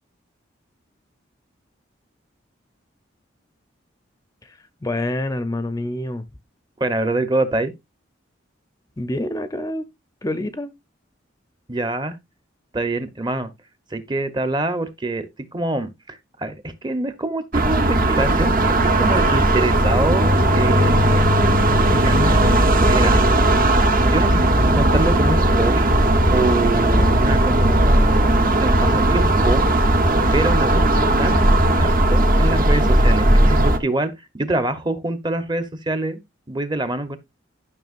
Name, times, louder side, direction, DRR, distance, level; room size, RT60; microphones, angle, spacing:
voice 1, 4.4-6.2 9.0-9.9 10.2-10.7, left 1 dB, 20° left, 0.6 m, -27 dB
voice 2, 6.8-7.7 11.7-12.2 12.7-13.5 13.9-15.3 15.5-22.4 22.8-23.1 24.1-25.9 26.3-29.9 30.3-31.4 31.7-36.2 36.5-37.2, right 2 dB, 20° right, 0.9 m, -25 dB
sound 1, 17.5-33.8, right 1 dB, 45° right, 1.1 m, -17 dB
12.0 x 6.0 x 2.5 m
head